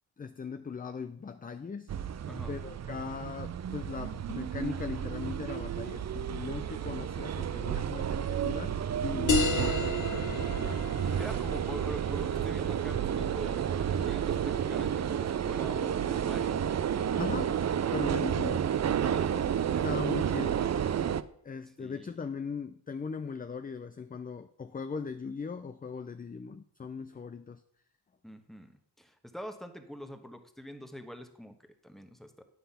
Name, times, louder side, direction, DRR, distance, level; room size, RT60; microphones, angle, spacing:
voice 1, 0.2-1.9 2.5-10.8 17.1-17.6 17.9-18.7 19.8-20.6 21.4-27.6, left 5 dB, 20° left, 10 dB, 0.4 m, -39 dB
sound 1, 1.9-21.2, right 9 dB, 40° right, 0.5 m, -31 dB
sound 2, 9.3-14.4, left 5 dB, 45° left, 1.1 m, -34 dB
voice 2, 10.9-16.7 19.0-19.9 21.8-22.2 28.2-32.4, equal, ahead, 7 dB, 1.2 m, -45 dB
9.9 x 5.6 x 5.6 m, 0.65 s
cardioid pair, 85°, 42 cm